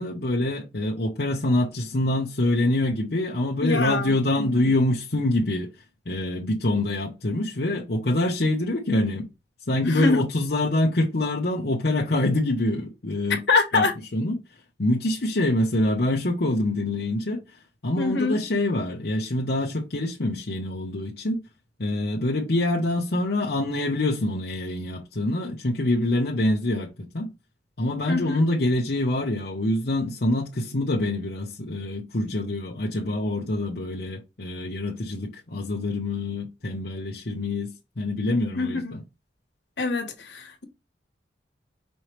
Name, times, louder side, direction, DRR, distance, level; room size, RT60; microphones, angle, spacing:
voice 1, 0.0-9.3 9.7-13.4 13.7-14.4 14.8-21.5 21.8-27.3 27.8-39.0, left 1 dB, 60° left, 0.9 m, -25 dB
voice 2, 3.6-4.7 9.8-10.2 13.5-13.9 17.9-18.4 28.1-28.4 38.6-39.0 39.8-40.6, left 3 dB, 75° left, 1.3 m, -25 dB
5.4 x 3.1 x 3.2 m
head